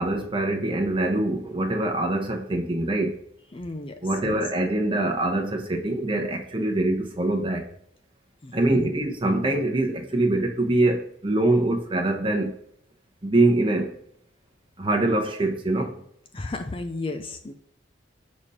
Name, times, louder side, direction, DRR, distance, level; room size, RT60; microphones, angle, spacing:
voice 1, 0.0-3.2 4.0-7.7 8.5-12.5 13.2-14.0 14.8-16.0, right 2 dB, 25° right, 1.0 m, -24 dB
voice 2, 3.5-4.0 4.2-4.4 8.4-8.9 16.3-17.5, left 2 dB, 30° left, 0.5 m, -33 dB
6.9 x 4.2 x 4.8 m
head